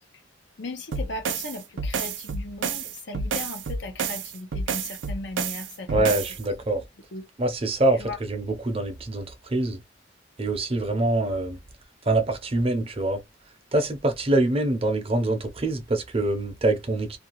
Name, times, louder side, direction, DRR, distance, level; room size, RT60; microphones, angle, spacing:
voice 1, 0.6-6.1 7.1-7.2 8.0-8.2, left 2 dB, 65° left, 0.7 m, -37 dB
sound 1, 0.9-6.4, right 5 dB, 75° right, 0.5 m, -30 dB
voice 2, 5.9-6.8 7.4-9.8 10.4-11.6 12.1-13.2 13.7-17.2, right 2 dB, 30° right, 0.7 m, -25 dB
2.6 x 2.3 x 2.9 m
head